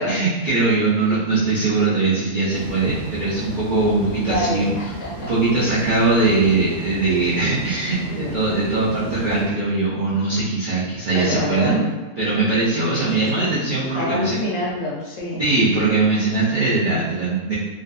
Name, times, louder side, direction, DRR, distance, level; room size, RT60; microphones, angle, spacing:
voice 1, 0.1-4.8 5.2-11.8 12.2-14.4 15.4-17.5, right 3 dB, 70° right, -9 dB, 0.4 m, -21 dB
sound 1, 2.5-9.4, equal, 5° right, 0.5 m, -35 dB
voice 2, 4.2-5.3 8.0-8.3 11.1-11.9 13.0-13.4 13.9-15.4, left 1 dB, 70° left, -3 dB, 0.9 m, -27 dB
2.5 x 2.4 x 2.2 m, 1.3 s
omnidirectional pair, 1.5 m